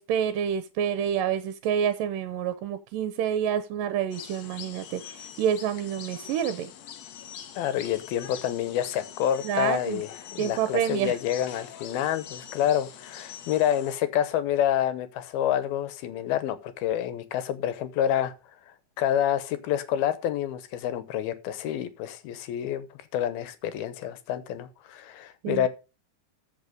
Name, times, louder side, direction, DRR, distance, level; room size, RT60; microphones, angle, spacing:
voice 1, 0.0-6.7 9.4-10.0 10.4-11.2 25.4-25.7, right 9 dB, 75° right, 2.3 m, -28 dB
sound 1, 4.1-14.0, left 9 dB, 65° left, 1.8 m, -44 dB
voice 2, 7.6-18.3 19.0-22.9 23.1-25.7, left 11 dB, 80° left, 2.8 m, -28 dB
14.0 x 5.7 x 5.2 m
omnidirectional pair, 4.3 m